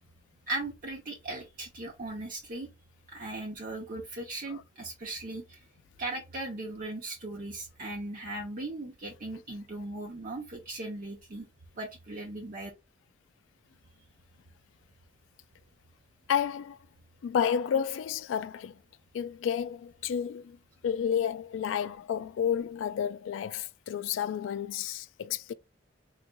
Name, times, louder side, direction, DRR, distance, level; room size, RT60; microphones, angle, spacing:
voice 1, 0.5-2.7 3.1-5.6 6.0-11.5 11.8-12.7, right 2 dB, 45° right, 0.7 m, -38 dB
voice 2, 16.3-16.8 17.2-18.8 19.1-20.6 20.8-25.5, left 8 dB, 90° left, 0.3 m, -31 dB
3.9 x 2.9 x 2.2 m
head